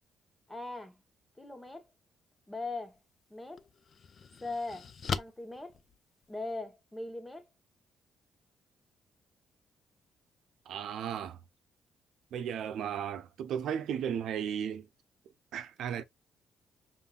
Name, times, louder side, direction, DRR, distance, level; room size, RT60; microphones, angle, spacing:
voice 1, 0.5-1.0 1.4-1.9 2.5-3.0 3.3-3.6 4.4-4.9 5.2-5.8 6.3-7.5, left 2 dB, 10° left, 1.1 m, -40 dB
sound 1, 2.8-3.0 3.6-6.6, left 6 dB, 50° left, 0.4 m, -40 dB
voice 2, 10.7-11.4 12.3-14.9 15.5-16.0, right 8 dB, 75° right, 0.5 m, -35 dB
5.3 x 2.6 x 2.4 m
cardioid pair, 90°, 0 cm